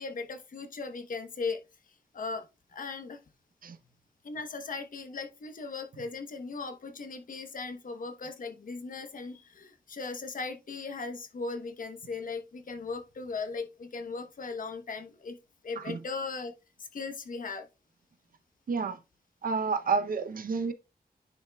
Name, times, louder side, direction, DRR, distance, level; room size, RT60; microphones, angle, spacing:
voice 1, 0.0-1.6 2.1-2.4 2.7-3.2 4.2-15.4 15.6-16.5 16.8-17.7, left 4 dB, 60° left, 1.0 m, -38 dB
voice 2, 18.7-19.0 19.4-20.7, right 5 dB, 60° right, 0.7 m, -30 dB
10.0 x 5.7 x 2.3 m
wide cardioid pair, 180°, 16 cm